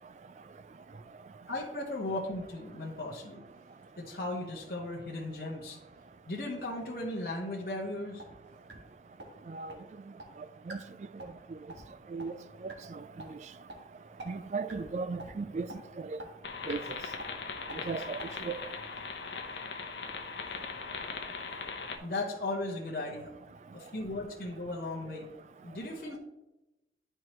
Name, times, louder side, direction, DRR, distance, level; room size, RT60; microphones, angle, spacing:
voice 1, 1.5-3.4 4.0-5.8 6.3-8.2 22.0-23.3 23.7-25.3 25.6-26.2, left 2 dB, 55° left, 1.1 m, -36 dB
sound 1, 8.2-8.3 8.7-8.8 9.2-9.3 9.7-9.8 10.2-10.3 10.7-10.8 11.2-11.4 11.7-11.8 12.2-12.3 12.7-12.8 13.2-13.3 13.7-13.8 14.2-14.3 14.7-14.9 15.2-15.3 15.7-15.8 16.2-16.3 16.7-16.8 17.2-17.3 17.7-17.8 18.2-18.3, right 1 dB, 85° right, 1.4 m, -44 dB
voice 2, 12.6-13.0 14.3-15.7 16.0-16.2 16.7-17.0 17.9-18.2 18.4-18.6, right 4 dB, 40° right, 0.3 m, -36 dB
sound 2, 16.4-22.0, left 5 dB, 80° left, 0.8 m, -40 dB
11.5 x 4.5 x 3.0 m
head